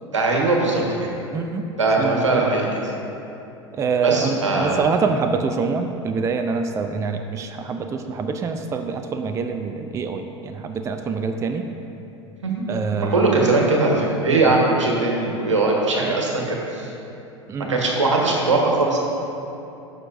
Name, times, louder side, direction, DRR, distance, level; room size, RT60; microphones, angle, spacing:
voice 1, 0.1-1.1 1.8-2.7 4.0-4.8 12.4-12.6 13.0-16.9 17.6-19.0, right 3 dB, 80° right, -1 dB, 1.4 m, -20 dB
voice 2, 1.3-1.7 2.0-2.5 3.7-11.7 12.7-13.5 14.3-14.6 15.9-16.2 17.5-17.8, right 5 dB, 20° right, 6 dB, 0.4 m, -25 dB
14.0 x 6.4 x 2.6 m, 2.8 s
figure-of-eight pair, 80°, 15 cm